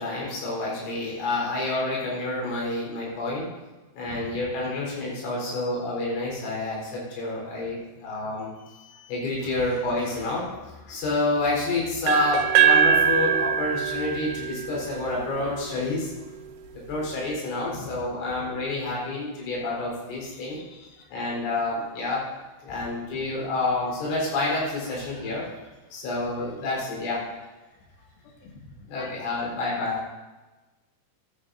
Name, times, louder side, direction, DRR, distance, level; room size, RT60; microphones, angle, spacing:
voice 1, 0.0-3.5 3.9-16.1 16.9-20.6 21.1-22.2 22.6-25.5 25.9-27.2 28.9-30.0, left 2 dB, 90° left, -4 dB, 6.5 m, -29 dB
sound 1, 12.1-16.0, right 8 dB, 85° right, 3.3 m, -23 dB
voice 2, 20.2-21.1 22.7-23.2 28.2-29.2, left 4 dB, 70° left, 1 dB, 3.1 m, -45 dB
16.0 x 13.5 x 2.6 m, 1.2 s
omnidirectional pair, 5.3 m